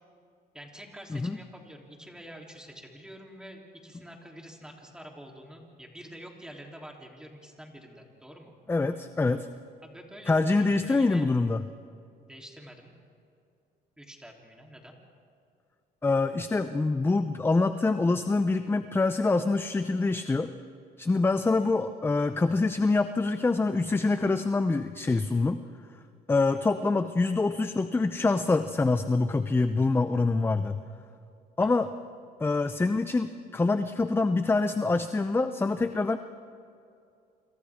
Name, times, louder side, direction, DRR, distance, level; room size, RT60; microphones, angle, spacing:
voice 1, 0.5-8.5 9.8-11.3 12.2-12.9 14.0-15.0 21.5-21.7 26.4-26.6 31.6-31.9, equal, 5° right, 0 dB, 3.3 m, -47 dB
voice 2, 8.7-9.5 10.3-11.6 16.0-20.5 21.0-25.6 26.3-30.8 31.6-31.9 32.4-36.2, left 3 dB, 15° left, 10 dB, 0.6 m, -25 dB
29.0 x 26.5 x 3.6 m, 2.5 s
cardioid pair, 110°, 17 cm